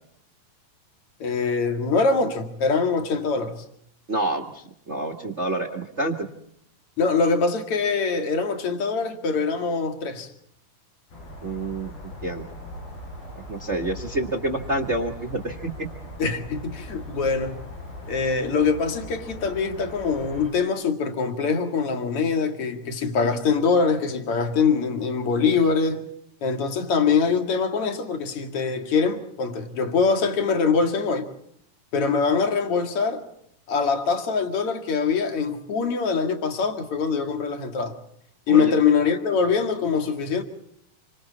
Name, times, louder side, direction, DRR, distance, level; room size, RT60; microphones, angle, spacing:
voice 1, 1.2-3.6 7.0-10.3 16.2-17.6 18.1-26.0 26.4-31.3 31.9-33.2 33.7-38.0 38.5-40.4, left 5 dB, 45° left, 2.7 m, -23 dB
voice 2, 4.1-6.1 11.4-11.9 12.2-12.5 13.5-15.9 38.5-38.7, right 2 dB, 45° right, 0.8 m, -28 dB
sound 1, 11.1-20.5, equal, 85° left, 8.1 m, -39 dB
28.0 x 25.0 x 4.2 m
omnidirectional pair, 4.2 m